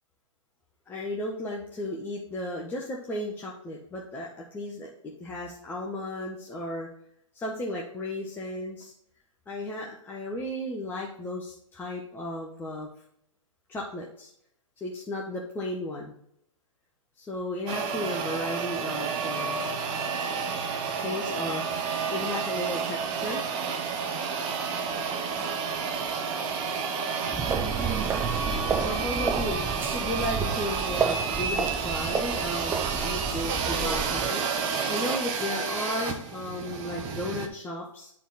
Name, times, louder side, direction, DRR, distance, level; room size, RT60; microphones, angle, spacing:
voice 1, 0.9-6.9 7.3-8.9 9.5-12.9 13.7-14.3 14.8-16.1 17.2-19.7 21.0-21.6 22.1-23.4 28.8-29.6 29.9-38.1, left 1 dB, 10° left, -3 dB, 1.1 m, -34 dB
sound 1, 17.7-37.5, right 5 dB, 30° right, 1.1 m, -30 dB
sound 2, 27.3-34.3, right 5 dB, 15° right, 0.7 m, -31 dB
11.5 x 4.4 x 4.2 m, 0.71 s
hypercardioid pair, 125°, 17 cm